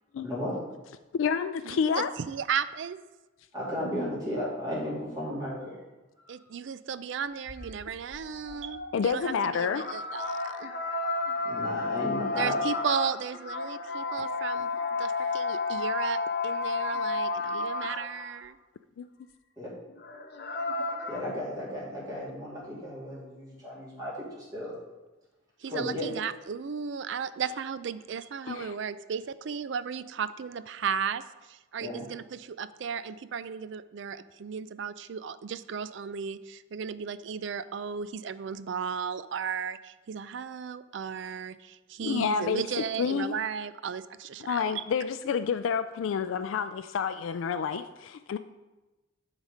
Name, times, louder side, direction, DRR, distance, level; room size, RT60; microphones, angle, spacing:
voice 1, 0.2-0.6 3.5-5.8 6.2-6.3 11.4-12.6 19.6-19.7 21.1-24.8 25.7-26.1 31.8-32.0, left 1 dB, 20° right, -8 dB, 2.6 m, -34 dB
voice 2, 1.1-2.1 8.9-9.8 19.0-19.1 28.5-28.8 42.0-43.3 44.4-48.4, left 6 dB, 75° left, 10 dB, 0.3 m, -29 dB
voice 3, 1.7-3.0 6.3-10.7 12.4-14.7 15.0-18.6 25.6-31.2 31.5-44.8, right 7 dB, 60° right, 14 dB, 0.4 m, -35 dB
sound 1, 7.5-18.4 19.9-21.2, left 3 dB, 50° left, 0.8 m, -32 dB
10.5 x 4.1 x 5.0 m, 1.1 s
head